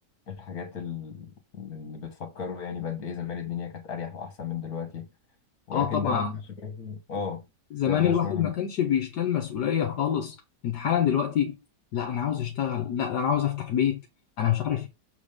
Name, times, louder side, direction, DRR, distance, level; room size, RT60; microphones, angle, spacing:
voice 1, 0.3-5.1 5.7-7.5 7.9-8.5, left 6 dB, 60° left, 2.1 m, -35 dB
voice 2, 5.7-6.3 7.7-10.4 10.6-11.5 11.9-14.0 14.4-14.9, left 9 dB, 75° left, 1.6 m, -26 dB
7.5 x 3.8 x 5.2 m
omnidirectional pair, 1.8 m